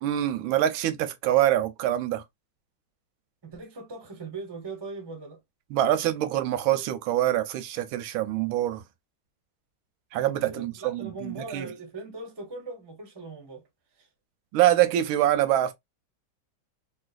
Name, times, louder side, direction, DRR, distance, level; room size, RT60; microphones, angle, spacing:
voice 1, 0.0-2.2 5.7-8.8 10.1-11.7 14.5-15.7, right 12 dB, 90° right, 1.4 m, -25 dB
voice 2, 3.4-5.4 10.5-13.6 13.9-14.1, right 3 dB, 25° right, 0.5 m, -40 dB
3.1 x 2.8 x 2.4 m
omnidirectional pair, 2.2 m